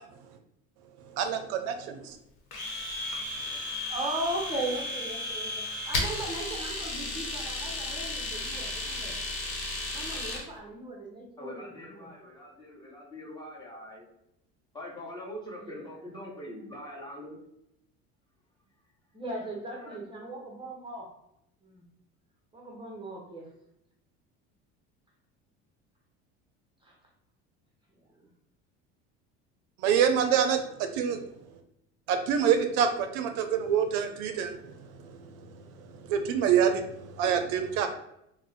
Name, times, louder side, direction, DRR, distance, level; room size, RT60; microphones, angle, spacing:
voice 1, 1.2-1.7 29.8-31.2 32.1-34.8 35.2-35.3 36.0-37.9, right 8 dB, 75° right, 7 dB, 0.5 m, -26 dB
Domestic sounds home sounds, 2.5-10.5, left 2 dB, 80° left, 0.9 m, -34 dB
voice 2, 3.9-9.2 9.9-12.1 15.6-16.0 19.1-21.1 21.6-21.8 22.5-23.5 26.8-26.9, right 1 dB, 15° right, -2 dB, 0.6 m, -38 dB
voice 3, 11.4-14.0 14.7-17.4 19.7-20.0, left 1 dB, 15° left, -5 dB, 1.1 m, -43 dB
2.4 x 2.1 x 3.9 m, 0.80 s
supercardioid pair, 105°, 32 cm